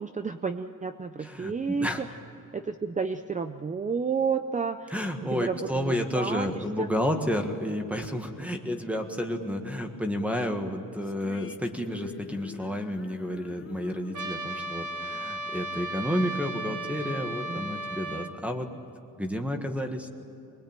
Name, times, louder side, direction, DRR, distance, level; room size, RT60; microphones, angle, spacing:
voice 1, 0.0-2.1 2.5-6.9 8.4-8.6 17.5-17.8 18.2-18.3, right 5 dB, 25° right, 8 dB, 0.5 m, -31 dB
voice 2, 1.2-2.0 4.9-18.7 19.2-20.1, equal, 5° right, 5 dB, 1.6 m, -31 dB
sound 1, 11.0-16.4, left 5 dB, 40° left, 1.2 m, -49 dB
Trumpet, 14.1-18.3, right 1 dB, 65° right, 1.6 m, -35 dB
25.5 x 20.5 x 9.0 m, 2.8 s
wide cardioid pair, 180°, 33 cm